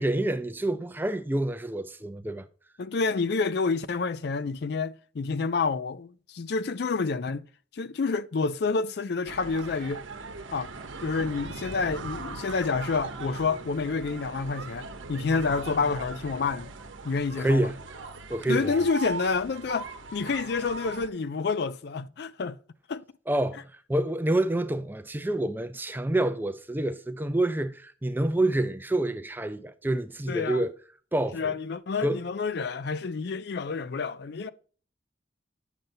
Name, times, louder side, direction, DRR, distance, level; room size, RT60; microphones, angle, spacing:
voice 1, 0.0-2.5 17.4-17.8 18.3-18.7 23.3-30.7 31.1-31.5 32.0-32.2, right 1 dB, 10° right, 0.4 m, -27 dB
voice 2, 2.8-7.5 7.7-10.0 10.5-10.7 11.0-16.7 17.0-17.7 18.5-22.6 22.9-23.0 30.3-30.6 31.3-34.5, left 4 dB, 55° left, 0.4 m, -28 dB
sound 1, 9.2-21.1, right 3 dB, 75° right, 0.9 m, -39 dB
9.0 x 6.6 x 2.7 m
head